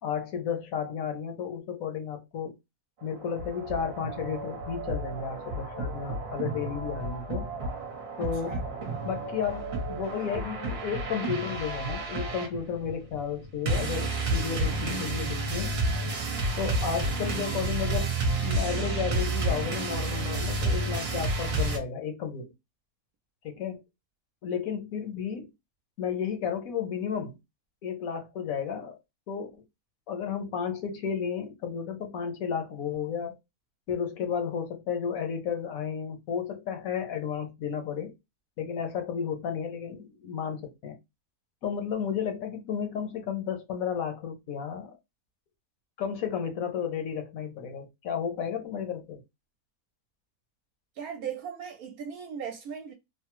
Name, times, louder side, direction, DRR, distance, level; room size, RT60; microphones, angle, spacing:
voice 1, 0.0-2.5 3.0-7.5 8.2-8.6 9.0-15.7 16.6-18.2 18.4-22.5 23.4-23.8 24.4-25.5 26.0-27.4 27.8-29.0 29.3-29.5 30.1-33.4 33.9-38.1 38.6-41.0 41.6-45.0 46.0-49.2, left 7 dB, 70° left, 1.1 m, -33 dB
sound 1, 3.0-21.8, right 2 dB, 45° right, 0.9 m, -31 dB
voice 2, 8.2-8.6 51.0-52.9, right 7 dB, 75° right, 1.0 m, -38 dB
3.2 x 2.0 x 2.9 m
omnidirectional pair, 1.6 m